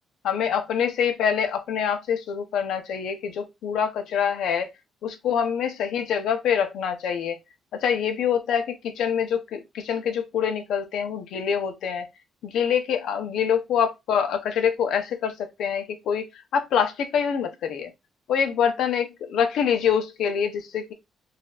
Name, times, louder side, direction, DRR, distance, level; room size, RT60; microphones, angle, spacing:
voice 1, 0.2-4.7 5.0-7.4 7.7-12.1 12.4-16.3 16.5-17.9 18.3-20.9, left 7 dB, 75° left, 0.7 m, -25 dB
4.1 x 2.6 x 2.4 m
cardioid pair, 170°, 0 cm